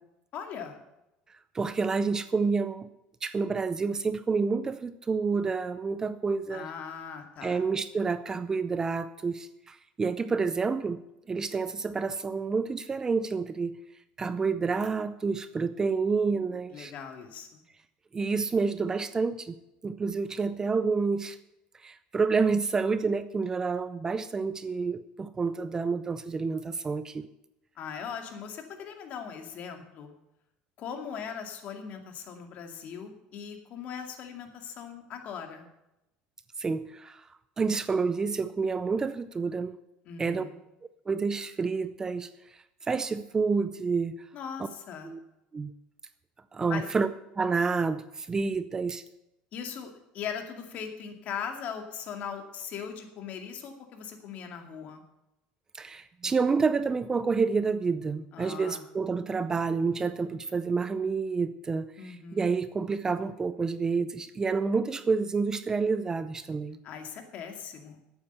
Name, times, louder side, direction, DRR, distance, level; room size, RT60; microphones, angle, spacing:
voice 1, 0.3-0.8 6.5-7.6 16.7-17.6 27.8-30.1 30.8-35.7 40.0-40.6 44.3-45.1 46.7-46.8 49.5-55.0 58.3-58.8 62.0-62.6 66.8-68.0, left 7 dB, 50° left, 5 dB, 2.3 m, -39 dB
voice 2, 1.5-2.9 3.2-6.7 7.4-11.0 11.3-13.7 14.2-16.9 18.1-19.6 19.8-21.4 21.8-27.2 36.6-37.2 37.6-39.8 40.2-40.4 41.1-42.3 42.9-44.1 45.0-45.2 45.5-45.7 46.5-47.1 47.4-49.0 55.7-66.8, right 4 dB, 20° right, 13 dB, 0.5 m, -29 dB
12.5 x 8.7 x 6.8 m, 0.89 s
cardioid pair, 135°, 3 cm